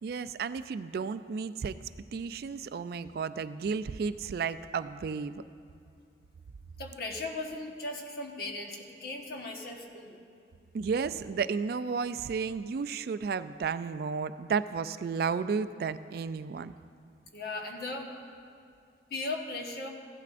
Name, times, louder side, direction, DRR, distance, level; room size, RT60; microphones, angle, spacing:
voice 1, 0.0-1.8 2.1-5.4 10.7-16.7, right 5 dB, 60° right, 13 dB, 0.3 m, -33 dB
voice 2, 6.8-10.2 17.3-18.1 19.1-19.9, left 2 dB, 60° left, 1 dB, 1.3 m, -37 dB
16.0 x 11.5 x 2.5 m, 2.5 s
head